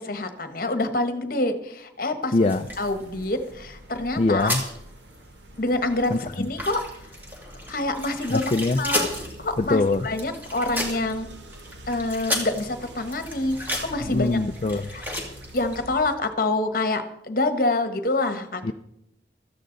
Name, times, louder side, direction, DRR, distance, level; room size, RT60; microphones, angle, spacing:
voice 1, 0.0-2.5 2.8-4.5 5.6-6.8 7.7-8.5 8.8-9.1 9.4-11.3 11.9-14.3 14.9-15.0 15.5-18.6, left 2 dB, 50° left, 8 dB, 1.2 m, -26 dB
voice 2, 2.3-2.7 4.2-4.6 6.1-6.5 8.3-8.8 9.6-10.1 14.0-14.9 18.6-18.7, left 2 dB, 35° left, 6 dB, 0.4 m, -23 dB
sound 1, 2.4-3.8 4.1-4.8 5.1-5.2 5.5-15.8, left 1 dB, 10° right, 2.4 m, -33 dB
sound 2, 2.5-16.2, right 1 dB, 85° right, 1.3 m, -45 dB
17.0 x 13.5 x 3.9 m, 0.81 s
head